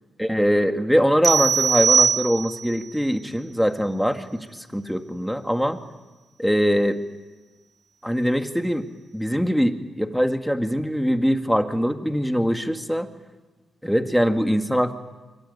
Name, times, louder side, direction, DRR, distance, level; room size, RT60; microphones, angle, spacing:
voice 1, 0.2-5.8 6.4-7.0 8.0-8.9 9.1-13.1 13.8-14.9, equal, ahead, 7 dB, 2.2 m, -22 dB
sound 1, 1.2-2.8, right 6 dB, 55° right, 0.9 m, -20 dB
25.0 x 23.5 x 9.8 m, 1.3 s
cardioid pair, 75°, 0 cm